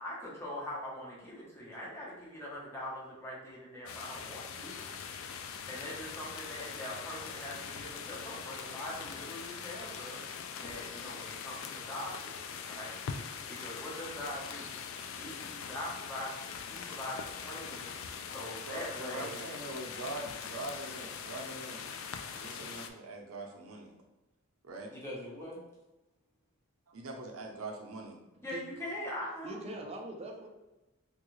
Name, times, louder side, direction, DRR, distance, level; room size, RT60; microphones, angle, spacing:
voice 1, 0.0-4.8 5.7-10.2 10.6-12.4 12.7-12.9 13.5-14.8 15.2-17.2 17.4-17.9 18.3-19.4 24.9-25.6 28.4-29.6, left 1 dB, 10° left, -6 dB, 0.9 m, -42 dB
sound 1, 3.9-22.9, left 6 dB, 70° left, 0.3 m, -42 dB
voice 2, 18.6-21.9 22.3-23.9 24.6-24.9 26.9-28.2, right 2 dB, 85° right, 2 dB, 0.6 m, -43 dB
voice 3, 29.4-30.5, right 2 dB, 30° right, 2 dB, 0.5 m, -42 dB
3.5 x 2.3 x 3.1 m, 1.0 s
head